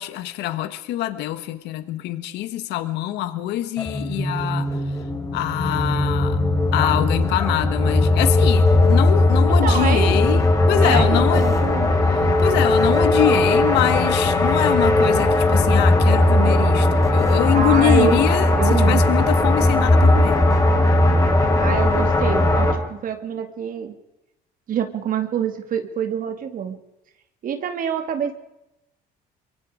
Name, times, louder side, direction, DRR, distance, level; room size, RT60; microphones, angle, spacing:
voice 1, 0.0-5.0 5.3-6.4 6.7-10.4 10.7-11.5 12.2-20.4, left 13 dB, 85° left, 11 dB, 1.4 m, -24 dB
sound 1, 3.8-22.7, left 1 dB, 20° left, 4.4 m, -18 dB
sound 2, 5.1-17.7, left 6 dB, 55° left, 6.2 m, -30 dB
voice 2, 9.5-10.4 10.8-11.9 17.5-18.2 18.6-19.0 21.6-23.9 24.7-26.8 27.4-28.3, right 8 dB, 55° right, 7 dB, 2.4 m, -26 dB
24.0 x 23.5 x 5.0 m, 0.91 s
cardioid pair, 110°, 17 cm